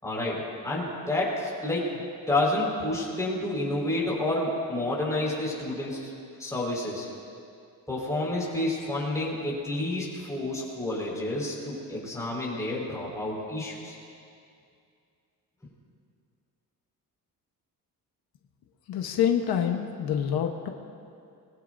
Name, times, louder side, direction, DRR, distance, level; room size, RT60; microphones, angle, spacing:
voice 1, 0.0-6.1 6.4-7.1 7.9-13.9, left 1 dB, 10° left, -5 dB, 5.0 m, -29 dB
voice 2, 18.9-20.7, left 9 dB, 85° left, 3 dB, 1.2 m, -26 dB
23.5 x 21.0 x 2.7 m, 2.4 s
cardioid pair, 145°, 36 cm